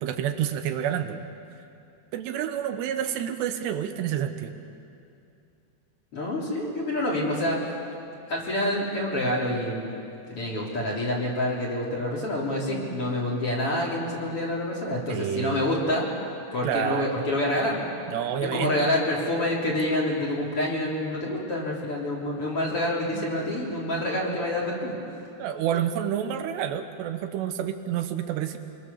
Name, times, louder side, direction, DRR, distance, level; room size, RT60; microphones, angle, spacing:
voice 1, 0.0-1.3 2.1-4.5 15.1-15.7 16.6-17.1 18.1-18.7 23.1-23.3 25.4-28.6, right 9 dB, 80° right, 7 dB, 3.0 m, -29 dB
voice 2, 6.1-7.7 8.3-9.9 10.3-16.1 16.5-17.8 18.4-24.9, left 1 dB, 35° left, -4 dB, 3.9 m, -27 dB
25.5 x 22.5 x 7.1 m, 2.6 s
omnidirectional pair, 5.1 m